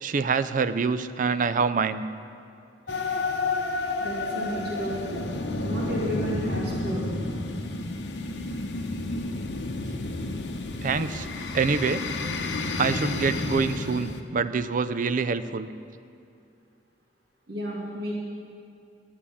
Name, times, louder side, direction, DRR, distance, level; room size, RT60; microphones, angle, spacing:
voice 1, 0.0-2.0 10.8-11.3 11.5-12.0 12.8-15.7, right 5 dB, 45° right, 12 dB, 0.4 m, -25 dB
sound 1, 2.9-14.2, left 3 dB, 70° left, 0.8 m, -31 dB
voice 2, 4.0-5.3 5.6-7.3 17.5-18.2, equal, 65° right, -5 dB, 2.4 m, -32 dB
11.0 x 7.3 x 8.5 m, 2.5 s
head